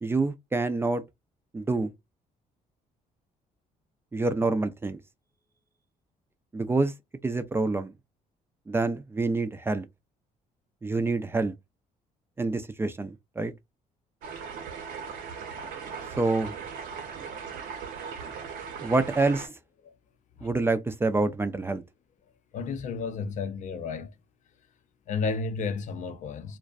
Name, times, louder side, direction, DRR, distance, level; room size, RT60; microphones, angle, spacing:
voice 1, 0.0-1.0 1.5-1.9 4.1-5.0 6.5-6.9 7.2-7.9 8.7-9.9 10.8-11.5 12.4-13.5 16.2-16.6 18.8-19.5 20.4-21.8, right 3 dB, 15° right, 0.3 m, -27 dB
sound 1, 14.2-19.5, right 6 dB, 85° right, 0.8 m, -38 dB
voice 2, 22.5-24.1 25.1-26.6, left 4 dB, 55° left, 0.5 m, -32 dB
2.5 x 2.1 x 2.3 m
cardioid pair, 105°, 15 cm